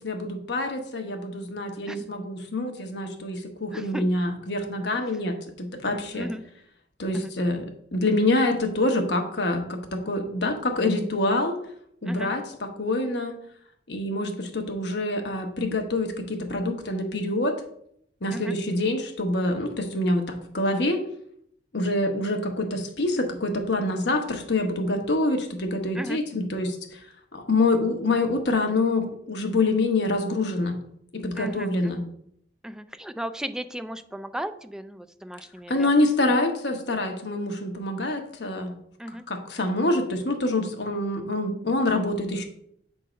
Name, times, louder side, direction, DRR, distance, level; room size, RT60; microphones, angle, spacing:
voice 1, 0.0-6.3 7.0-7.7 7.9-11.6 12.0-13.3 13.9-17.5 18.2-21.0 21.7-26.7 27.3-30.8 31.1-32.0 35.7-38.7 39.3-42.4, left 2 dB, 65° left, 4 dB, 1.1 m, -26 dB
voice 2, 3.7-4.0 6.1-6.4 7.1-7.3 12.1-12.3 18.3-18.5 26.0-26.2 31.4-31.9 32.6-35.9 39.0-39.2, equal, 5° right, 10 dB, 0.3 m, -35 dB
7.5 x 3.8 x 5.1 m, 0.69 s
head